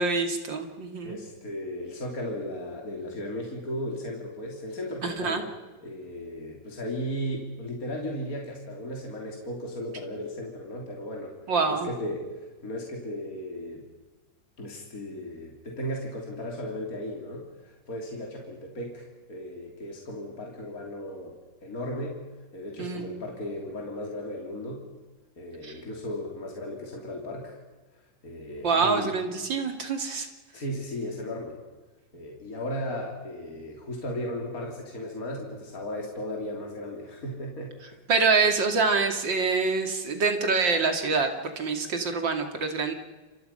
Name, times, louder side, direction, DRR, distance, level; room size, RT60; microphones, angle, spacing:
voice 1, 0.0-1.2 5.0-5.4 11.5-11.9 22.8-23.2 25.6-25.7 28.6-30.3 38.1-42.9, right 4 dB, 85° right, 5 dB, 3.2 m, -26 dB
voice 2, 1.0-5.5 5.8-11.4 11.7-13.8 14.6-21.4 21.6-22.2 22.5-24.8 25.4-27.6 27.9-29.1 30.5-31.6 32.1-38.0, left 1 dB, 50° left, 0 dB, 3.7 m, -36 dB
29.5 x 24.5 x 5.6 m, 1.3 s
omnidirectional pair, 2.0 m